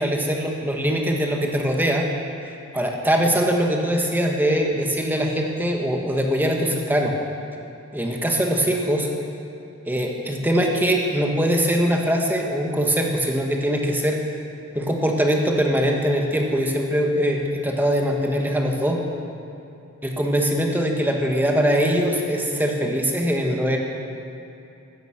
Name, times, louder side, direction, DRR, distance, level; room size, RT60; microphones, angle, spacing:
voice 1, 0.0-2.1 2.7-7.1 7.9-9.1 9.9-14.2 14.8-19.0 20.0-23.8, equal, 10° right, 0 dB, 1.8 m, -22 dB
15.5 x 15.0 x 6.3 m, 2.8 s
head